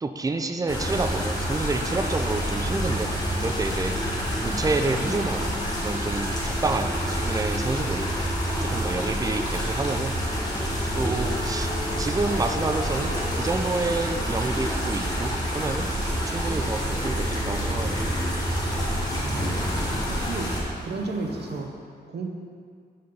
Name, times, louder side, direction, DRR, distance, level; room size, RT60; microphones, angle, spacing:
voice 1, 0.0-4.1 4.4-5.5 5.8-8.1 8.6-10.5 10.9-11.7 12.0-15.9 16.2-18.0, right 3 dB, 20° right, 6 dB, 0.4 m, -29 dB
sound 1, 0.7-20.6, equal, 20° left, 1.5 m, -27 dB
sound 2, 16.6-21.6, left 2 dB, 60° left, 1.3 m, -38 dB
voice 2, 19.2-19.6 20.1-20.5 20.8-21.7 22.1-22.3, right 3 dB, 70° right, 2 dB, 0.8 m, -33 dB
6.6 x 4.3 x 5.3 m, 2.1 s
wide cardioid pair, 90°, 18 cm